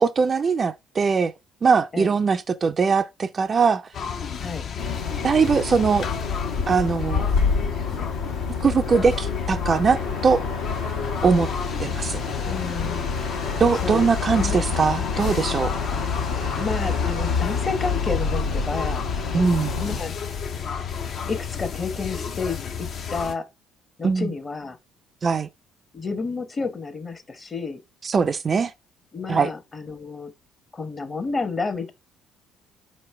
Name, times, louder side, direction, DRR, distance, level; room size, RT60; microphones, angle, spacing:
voice 1, 0.0-1.3 1.6-3.9 5.2-6.1 6.7-7.3 8.6-10.4 11.2-11.5 11.8-12.2 13.6-15.7 19.3-19.8 24.0-24.3 25.2-25.5 28.0-28.7 29.3-29.5, right 5 dB, 40° right, 0.3 m, -21 dB
sound 1, 3.9-23.3, left 7 dB, 55° left, 0.5 m, -32 dB
sound 2, 4.8-20.0, left 5 dB, 80° left, 1.0 m, -28 dB
voice 2, 12.5-13.0 13.8-14.6 15.9-16.0 16.6-19.0 19.8-20.1 20.5-20.9 21.3-23.5 24.0-24.8 25.9-27.8 29.1-30.3 30.7-31.9, left 4 dB, 35° left, 0.9 m, -31 dB
4.2 x 3.2 x 3.2 m
hypercardioid pair, 55°, 0 cm